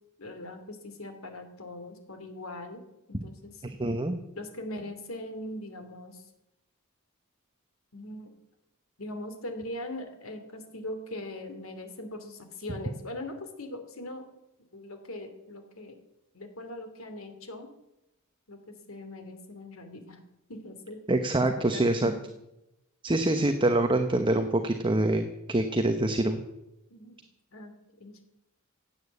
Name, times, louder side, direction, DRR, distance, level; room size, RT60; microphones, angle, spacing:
voice 1, 0.2-2.8 3.1-3.6 4.3-6.3 7.9-8.3 9.0-14.3 14.7-16.0 16.3-17.7 18.5-20.2 20.5-21.0 21.3-22.2 23.1-23.4 26.9-27.2 27.5-27.7 28.0-28.3, left 1 dB, 75° left, 7 dB, 2.7 m, -41 dB
voice 2, 3.6-4.2 21.1-22.1 23.0-26.4, right 1 dB, 25° right, 7 dB, 0.9 m, -25 dB
16.5 x 9.1 x 8.3 m, 0.91 s
head